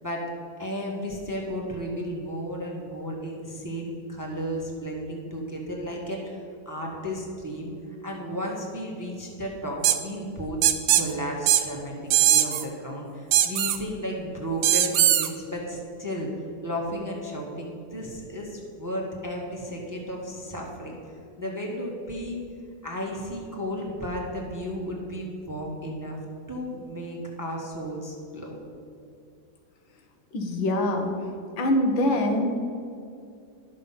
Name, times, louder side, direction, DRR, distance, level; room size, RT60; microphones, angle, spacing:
voice 1, 0.6-6.4 6.6-7.7 8.0-10.6 10.9-16.3 16.6-21.0 21.4-22.4 22.8-26.2 26.5-28.6, equal, 15° right, -1 dB, 1.0 m, -33 dB
sound 1, 9.8-10.0 10.6-11.0 11.5-11.6 12.1-12.6 13.3-13.8 14.6-15.3, right 11 dB, 85° right, 1.4 m, -19 dB
voice 2, 30.3-31.1 31.6-32.6, left 1 dB, 85° left, 3 dB, 1.9 m, -24 dB
11.5 x 6.5 x 5.6 m, 2.5 s
omnidirectional pair, 2.1 m